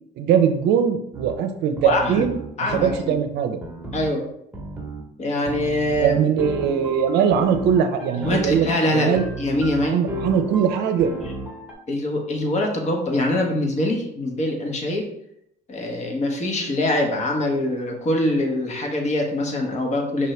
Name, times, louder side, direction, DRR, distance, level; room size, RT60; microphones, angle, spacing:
voice 1, 0.2-2.4 2.7-3.6 5.9-9.2 9.8-11.1, right 7 dB, 80° right, 6 dB, 0.5 m, -21 dB
sound 1, 1.1-1.3 1.8-3.2 3.6-4.1 4.5-5.0 5.5-11.7, right 2 dB, 10° right, 1.0 m, -34 dB
voice 2, 1.8-2.3 2.6-3.2 3.9-4.3 5.2-6.2 8.2-10.0 11.9-15.0 15.7-20.3, left 1 dB, 45° left, 1 dB, 1.1 m, -23 dB
5.2 x 2.8 x 3.3 m, 0.76 s
cardioid pair, 110°, 17 cm